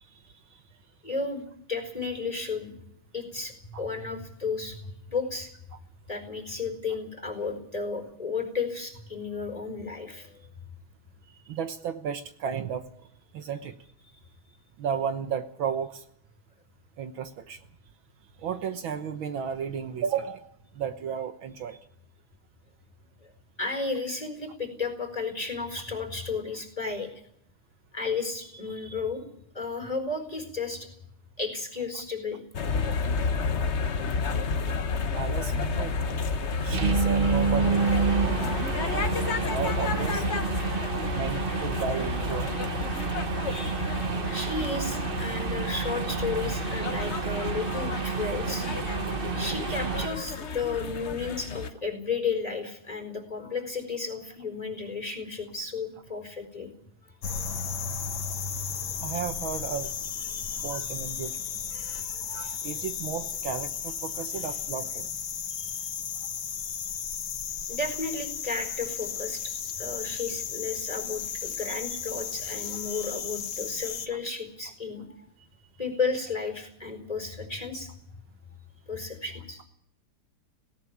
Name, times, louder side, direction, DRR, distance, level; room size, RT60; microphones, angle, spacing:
voice 1, 1.0-2.7 3.1-5.5 6.1-10.5 11.3-11.4 23.2-23.3 23.6-27.1 27.9-29.2 29.5-30.9 31.4-32.4 38.5-38.6 40.6-40.9 43.5-48.7 49.3-56.7 57.3-57.4 60.3-60.7 61.7-62.5 65.6-65.9 67.7-75.0 75.8-77.9 78.9-79.6, left 4 dB, 15° left, 6 dB, 4.5 m, -33 dB
voice 2, 11.5-12.9 13.3-13.8 14.8-16.0 17.0-17.6 18.4-20.5 20.8-21.8 35.1-36.0 36.6-38.1 38.9-39.1 39.5-40.3 41.1-42.7 44.7-44.8 49.8-49.9 59.0-59.9 60.6-61.4 61.7-65.1, right 7 dB, 70° right, 9 dB, 1.8 m, -33 dB
sound 1, 32.5-51.7, left 5 dB, 40° left, 1.0 m, -31 dB
sound 2, 35.4-50.1, right 6 dB, 40° right, 0.8 m, -30 dB
sound 3, 57.2-74.1, left 7 dB, 65° left, 2.1 m, -34 dB
18.5 x 17.5 x 8.6 m, 0.70 s
omnidirectional pair, 2.3 m